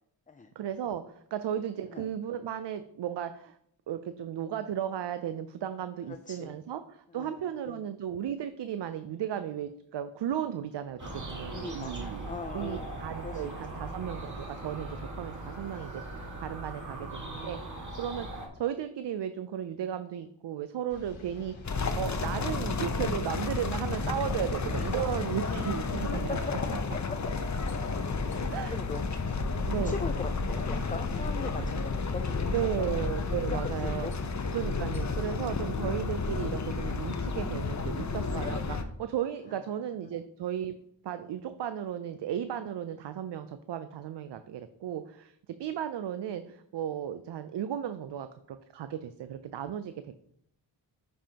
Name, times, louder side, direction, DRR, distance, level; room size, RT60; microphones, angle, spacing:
voice 1, 0.6-3.6 3.9-12.3 12.5-26.4 28.5-28.8 29.7-30.0 32.5-34.1 34.5-40.8 41.0-50.2, right 10 dB, 65° right, 10 dB, 0.5 m, -35 dB
voice 2, 6.1-6.5 7.1-7.9 11.5-13.4 17.2-17.7 24.8-25.0 26.3-26.4 27.1-27.2 28.6-29.0 29.7-32.9 33.5-34.6 40.1-40.2, left 4 dB, 20° left, 7 dB, 0.4 m, -41 dB
sound 1, 11.0-18.5, right 2 dB, 40° right, 2.0 m, -40 dB
sound 2, 20.9-26.4, left 2 dB, 85° left, 1.3 m, -49 dB
sound 3, 21.6-38.8, left 4 dB, 40° left, 0.8 m, -31 dB
10.0 x 5.5 x 2.9 m, 0.72 s
cardioid pair, 55°, 46 cm